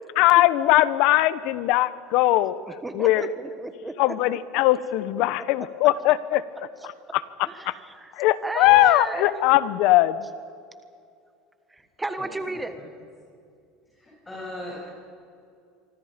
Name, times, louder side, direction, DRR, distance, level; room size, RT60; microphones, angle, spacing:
voice 1, 0.1-2.6 2.9-3.3 4.0-6.4 7.1-7.2 7.7-7.8 8.2-10.3, left 16 dB, 65° left, 16 dB, 1.0 m, -20 dB
voice 2, 2.7-4.6 5.6-5.7 6.8-6.9 7.5-8.1 8.4-9.4 11.7-12.8, right 2 dB, 10° right, 9 dB, 1.3 m, -34 dB
voice 3, 13.9-14.8, left 1 dB, 15° left, -5 dB, 7.4 m, -37 dB
26.5 x 25.0 x 5.2 m, 2.4 s
supercardioid pair, 120°, 0 cm